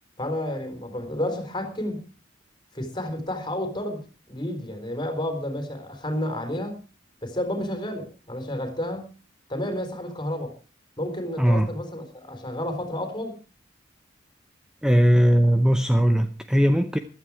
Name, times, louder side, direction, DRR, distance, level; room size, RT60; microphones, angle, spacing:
voice 1, 0.2-2.1 2.7-4.0 4.3-6.8 7.2-9.1 9.5-10.5 11.0-13.4, left 1 dB, 25° left, 3.8 m, -31 dB
voice 2, 11.4-11.7 14.8-17.0, equal, 5° right, 0.7 m, -19 dB
15.0 x 12.5 x 4.7 m
head